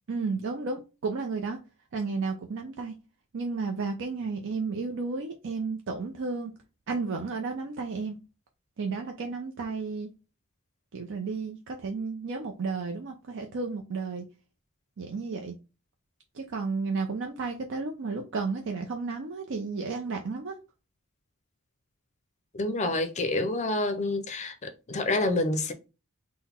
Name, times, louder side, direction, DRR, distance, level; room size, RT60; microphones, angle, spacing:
voice 1, 0.1-1.6 1.9-3.0 3.3-6.5 6.9-8.2 8.8-10.1 10.9-14.2 15.0-15.5 16.3-20.6, right 4 dB, 60° right, 0.5 m, -32 dB
voice 2, 22.5-25.7, left 2 dB, 35° left, 0.5 m, -28 dB
3.9 x 2.1 x 4.2 m
head